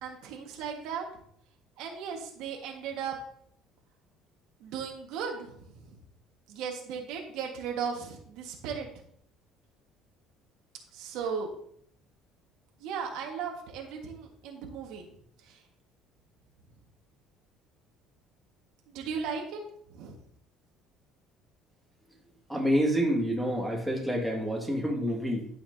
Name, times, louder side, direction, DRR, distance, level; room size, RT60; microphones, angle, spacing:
voice 1, 0.0-1.1 1.8-3.2 4.6-6.0 6.5-8.9 10.9-11.5 12.8-15.1 15.5-15.6 18.9-19.6 19.9-20.2, right 6 dB, 75° right, 1 dB, 1.6 m, -36 dB
voice 2, 22.5-25.5, equal, ahead, -3 dB, 2.1 m, -28 dB
12.0 x 5.8 x 2.8 m, 0.66 s
cardioid pair, 125°, 0 cm